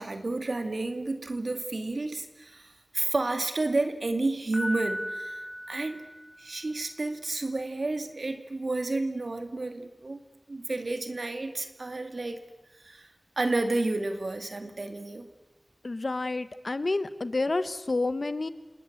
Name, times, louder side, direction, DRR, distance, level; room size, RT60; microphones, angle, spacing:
voice 1, 0.0-6.0 6.4-12.4 12.8-13.1 13.4-15.3, right 2 dB, 75° right, 8 dB, 2.3 m, -31 dB
Piano, 4.5-6.6, equal, 10° left, 5.0 m, -36 dB
voice 2, 15.8-18.5, left 2 dB, 65° left, 13 dB, 1.3 m, -29 dB
27.5 x 20.0 x 8.1 m, 1.1 s
wide cardioid pair, 60°, 0 cm